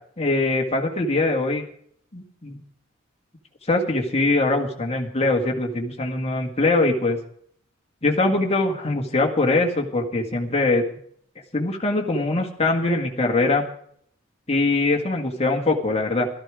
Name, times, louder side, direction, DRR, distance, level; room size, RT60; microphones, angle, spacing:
voice 1, 0.2-1.6 2.1-2.6 3.7-7.2 8.0-10.8 11.5-13.7 14.5-16.3, left 2 dB, 30° left, 2 dB, 1.7 m, -22 dB
13.0 x 13.0 x 4.9 m, 0.65 s
head